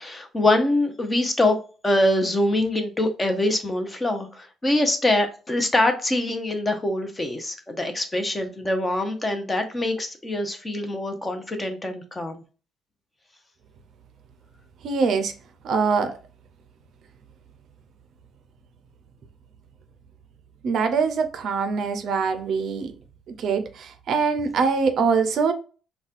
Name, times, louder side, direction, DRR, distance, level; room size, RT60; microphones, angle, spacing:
voice 1, 0.0-1.6 1.8-12.4, left 1 dB, 20° left, 0.7 m, -24 dB
voice 2, 14.8-15.3 15.6-16.2 20.6-22.9 23.4-25.5, right 5 dB, 60° right, 0.5 m, -23 dB
4.1 x 2.2 x 2.4 m
cardioid pair, 125°, 0 cm